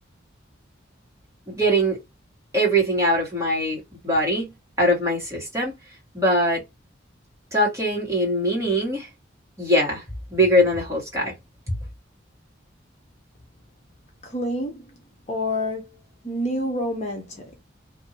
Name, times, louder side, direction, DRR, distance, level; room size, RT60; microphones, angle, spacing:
voice 1, 1.5-2.0 2.5-4.5 4.8-5.7 6.1-6.6 7.5-9.1 9.6-10.0 10.3-11.3 11.7-11.8, equal, 15° right, 1.5 m, -22 dB
voice 2, 14.2-15.0 15.3-16.0 16.2-17.6, left 1 dB, 35° left, 0.8 m, -28 dB
2.7 x 2.6 x 2.7 m
head